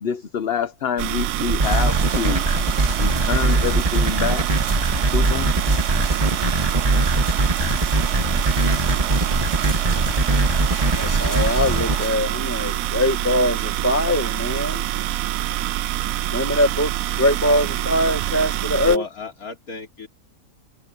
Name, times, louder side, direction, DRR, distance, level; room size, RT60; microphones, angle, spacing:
voice 1, 0.0-2.5 3.0-4.5 5.1-5.5, left 7 dB, 50° left, 0.9 m, -26 dB
sound 1, 1.0-19.0, right 13 dB, 75° right, 1.0 m, -26 dB
sound 2, 1.5-12.0, right 2 dB, 25° right, 1.6 m, -20 dB
sound 3, 1.6-12.1, right 1 dB, 55° right, 7.8 m, -34 dB
voice 2, 10.9-14.8 16.3-16.9 17.2-19.0, left 1 dB, 10° left, 1.1 m, -22 dB
voice 3, 18.8-20.1, left 2 dB, 85° left, 3.6 m, -33 dB
omnidirectional pair, 1.5 m